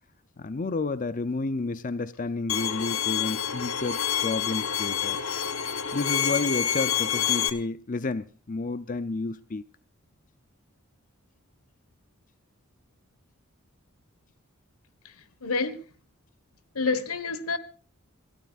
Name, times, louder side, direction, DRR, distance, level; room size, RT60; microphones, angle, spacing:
voice 1, 0.4-5.2 5.9-9.6, left 3 dB, 40° left, 0.6 m, -31 dB
Bowed string instrument, 2.5-7.5, left 9 dB, 65° left, 1.2 m, -28 dB
voice 2, 15.0-15.8 16.7-17.6, left 4 dB, 85° left, 1.5 m, -28 dB
28.5 x 12.5 x 2.4 m
head